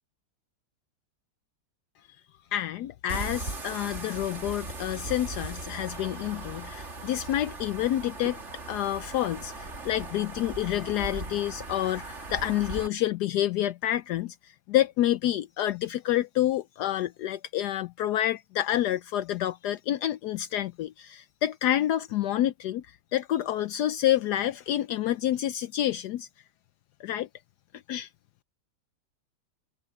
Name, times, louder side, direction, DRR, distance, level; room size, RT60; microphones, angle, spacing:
voice 1, 2.5-8.4 8.7-22.8 23.1-26.3 27.0-27.3 27.9-28.1, left 12 dB, 75° left, 1.1 m, -28 dB
sound 1, 3.1-12.9, right 3 dB, 40° right, 2.7 m, -38 dB
omnidirectional pair, 1.9 m